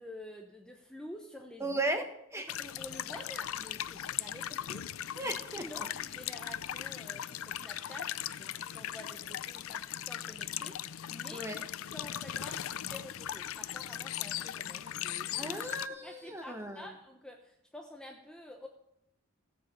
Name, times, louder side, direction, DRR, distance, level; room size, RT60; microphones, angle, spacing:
voice 1, 0.0-1.8 2.4-10.8 11.1-11.5 11.9-15.6 16.0-18.7, left 1 dB, 5° left, 1 dB, 0.9 m, -49 dB
voice 2, 1.6-2.5 5.1-5.9 11.3-11.7 15.4-16.9, right 1 dB, 15° right, 6 dB, 1.2 m, -36 dB
sound 1, 2.5-15.9, left 11 dB, 85° left, 0.5 m, -39 dB
16.0 x 7.2 x 7.5 m, 0.82 s
head